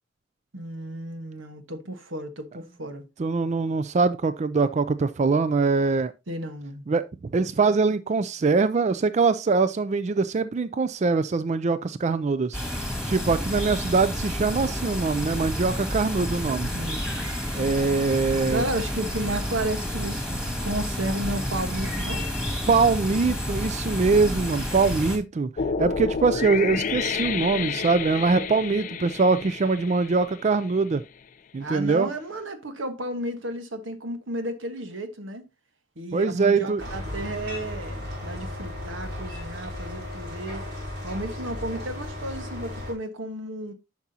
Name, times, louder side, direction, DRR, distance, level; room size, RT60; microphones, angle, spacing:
voice 1, 0.5-3.1 6.3-6.8 16.7-17.0 18.5-22.3 28.1-28.4 31.6-35.4 36.0-40.6 41.0-43.7, right 1 dB, 90° right, 1.4 m, -33 dB
voice 2, 3.2-6.1 6.9-12.6 13.1-16.7 17.5-18.6 22.7-25.5 25.8-31.0 31.5-32.1 36.1-36.8, right 4 dB, 35° right, 0.4 m, -23 dB
sound 1, 12.5-25.2, equal, 5° right, 2.1 m, -30 dB
sound 2, 25.6-30.8, left 6 dB, 40° left, 0.4 m, -30 dB
sound 3, 36.8-42.9, left 1 dB, 55° right, 3.6 m, -35 dB
10.5 x 6.0 x 2.8 m
head